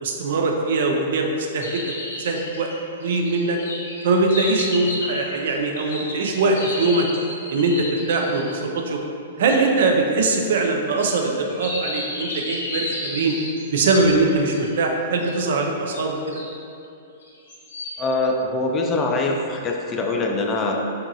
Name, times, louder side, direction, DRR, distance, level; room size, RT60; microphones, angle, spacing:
voice 1, 0.0-1.3 1.5-2.7 3.0-3.6 4.0-7.1 7.5-9.0 9.4-13.3 13.7-16.4, right 3 dB, 65° right, 2 dB, 0.3 m, -22 dB
sound 1, 1.6-8.6 9.5-9.6 11.0-14.7 15.2-15.3 15.9-16.5 17.2-18.0, left 1 dB, 70° left, 0.8 m, -33 dB
voice 2, 18.0-20.7, left 2 dB, 25° left, 1 dB, 0.3 m, -23 dB
2.8 x 2.3 x 2.6 m, 2.6 s
hypercardioid pair, 115°, 0 cm